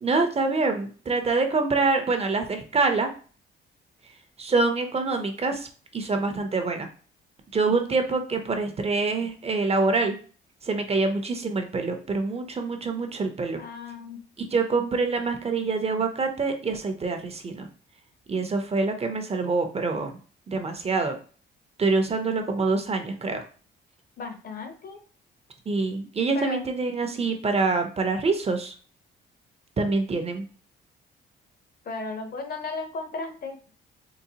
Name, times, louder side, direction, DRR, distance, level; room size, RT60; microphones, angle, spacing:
voice 1, 0.0-3.1 4.4-5.7 5.9-6.9 7.5-10.2 10.6-13.6 14.4-17.7 18.3-20.2 20.5-21.2 21.8-23.4 25.7-28.7 29.8-30.4, right 3 dB, 30° right, 5 dB, 0.6 m, -25 dB
voice 2, 13.6-14.2 24.2-25.0 26.3-26.6 31.9-33.6, left 3 dB, 50° left, 5 dB, 0.8 m, -35 dB
3.8 x 2.0 x 2.8 m, 0.40 s
cardioid pair, 90°, 20 cm